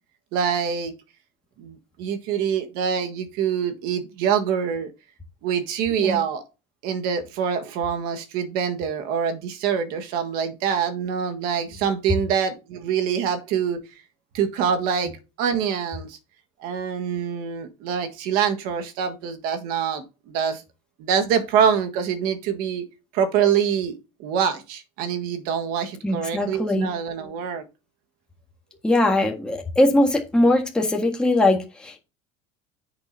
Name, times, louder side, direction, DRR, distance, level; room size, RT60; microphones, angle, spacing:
voice 1, 0.3-0.9 1.6-4.9 5.4-6.4 6.8-13.8 14.3-15.1 15.4-16.2 16.6-20.6 21.0-22.8 23.1-27.6, right 7 dB, 60° right, 1.6 m, -25 dB
voice 2, 26.0-26.9 28.8-32.0, left 1 dB, 5° left, 1.6 m, -21 dB
10.0 x 6.8 x 2.7 m
cardioid pair, 165°, 17 cm